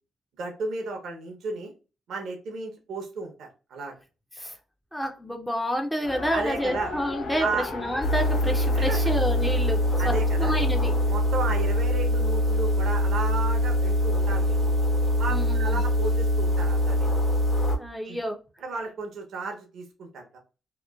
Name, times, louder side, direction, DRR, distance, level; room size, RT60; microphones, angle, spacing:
voice 1, 0.4-1.7 2.1-3.9 6.3-6.9 7.4-7.7 8.7-9.0 10.0-10.5 11.1-14.7 15.2-17.2 18.1-18.2 18.6-20.4, right 3 dB, 70° right, 2 dB, 0.8 m, -33 dB
voice 2, 4.9-9.8 10.0-10.1 10.4-10.9 15.3-15.9 17.8-18.4, equal, ahead, 3 dB, 0.6 m, -29 dB
Race car auto racing, 6.0-11.2, left 4 dB, 70° left, 0.4 m, -37 dB
sound 1, 8.0-17.8, left 1 dB, 40° left, 1.0 m, -23 dB
2.9 x 2.1 x 2.3 m, 0.32 s
supercardioid pair, 55°, 0 cm